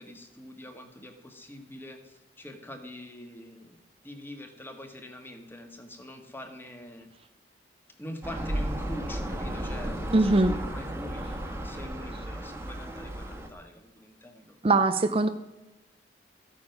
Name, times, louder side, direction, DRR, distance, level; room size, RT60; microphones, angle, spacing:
voice 1, 0.0-3.8 4.0-7.1 8.0-14.6, equal, 10° left, 5 dB, 1.6 m, -44 dB
sound 1, 8.2-13.5, right 1 dB, 15° right, 1.4 m, -34 dB
voice 2, 10.1-10.5 14.6-15.3, right 2 dB, 30° right, 9 dB, 0.5 m, -21 dB
13.5 x 8.6 x 5.9 m, 1.0 s
head